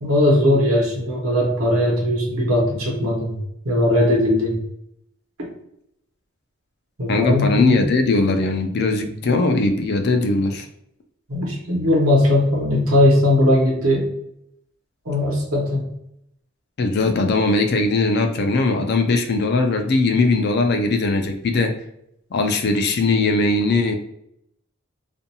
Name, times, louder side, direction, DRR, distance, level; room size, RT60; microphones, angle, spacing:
voice 1, 0.0-3.4 3.6-4.6 5.4-5.5 7.0-7.8 11.3-14.1 15.1-15.9, left 1 dB, 80° right, -2 dB, 0.9 m, -19 dB
voice 2, 7.1-10.7 16.8-21.7 22.3-24.0, left 3 dB, 50° left, 5 dB, 0.4 m, -19 dB
2.5 x 2.2 x 2.7 m, 0.76 s
head